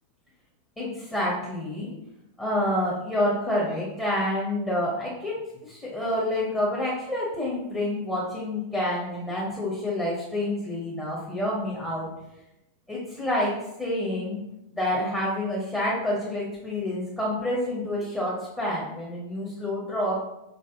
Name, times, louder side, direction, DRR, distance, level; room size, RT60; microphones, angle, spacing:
voice 1, 0.8-1.9 2.4-12.1 12.9-14.4 14.7-20.1, left 1 dB, 10° left, -5 dB, 1.1 m, -28 dB
4.7 x 3.9 x 2.8 m, 0.89 s
figure-of-eight pair, 90°, 0 cm